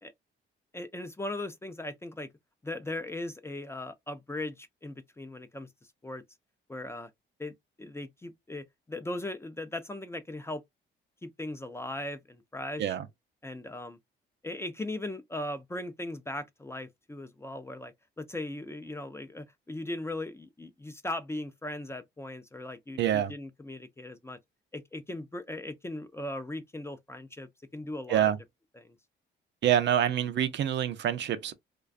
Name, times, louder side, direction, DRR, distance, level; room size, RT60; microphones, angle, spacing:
voice 1, 0.7-2.3 2.6-5.7 6.0-6.2 6.7-7.1 7.4-10.6 11.2-13.0 13.4-14.0 14.4-24.4 24.7-28.3 28.8-29.0, left 1 dB, 15° left, 0.4 m, -38 dB
voice 2, 23.0-23.3 28.1-28.4 29.6-31.5, right 10 dB, 65° right, 0.5 m, -26 dB
2.4 x 2.2 x 2.4 m
cardioid pair, 90°, 20 cm